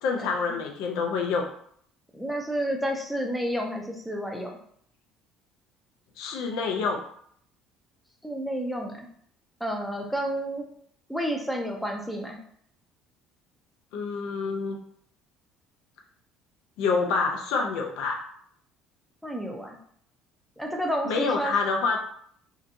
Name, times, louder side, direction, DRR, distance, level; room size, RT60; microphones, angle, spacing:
voice 1, 0.0-1.5 6.2-7.0 13.9-14.8 16.8-18.2 21.0-22.0, left 4 dB, 80° left, 2 dB, 0.4 m, -27 dB
voice 2, 2.1-4.6 8.2-9.1 9.6-10.6 11.1-12.4 19.2-19.8 20.6-21.6, equal, ahead, 1 dB, 0.5 m, -30 dB
2.7 x 2.3 x 2.5 m, 0.64 s
cardioid pair, 110°, 0 cm